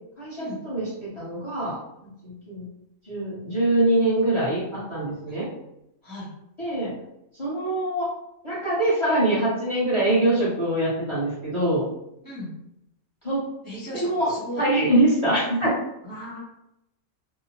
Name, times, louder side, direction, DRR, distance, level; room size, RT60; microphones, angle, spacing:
voice 1, 0.2-1.8 2.2-2.7 3.0-5.5 6.6-6.9 7.4-8.1 8.4-11.8 13.2-13.4 13.9-14.3 14.6-15.7, right 1 dB, 25° left, -8 dB, 0.8 m, -23 dB
voice 2, 13.6-14.6 16.0-16.4, equal, 20° right, -9 dB, 0.7 m, -36 dB
2.8 x 2.0 x 2.9 m, 0.84 s
omnidirectional pair, 1.4 m